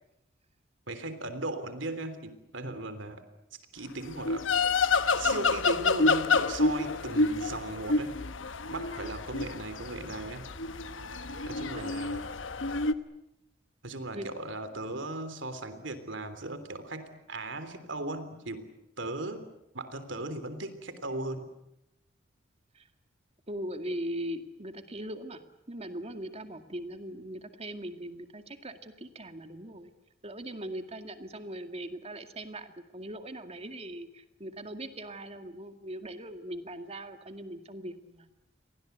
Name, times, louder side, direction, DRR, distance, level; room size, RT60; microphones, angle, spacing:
voice 1, 0.9-3.2 3.7-4.5 5.2-8.1 8.7-10.5 11.4-12.2 13.8-18.7 19.0-19.5 19.7-21.5, right 2 dB, 70° right, 11 dB, 3.4 m, -37 dB
sound 1, 4.1-12.9, left 3 dB, 80° left, 1.2 m, -28 dB
voice 2, 23.5-25.4 25.7-29.9 30.2-38.3, right 1 dB, 35° right, 8 dB, 2.2 m, -40 dB
30.0 x 23.0 x 8.2 m, 0.87 s
head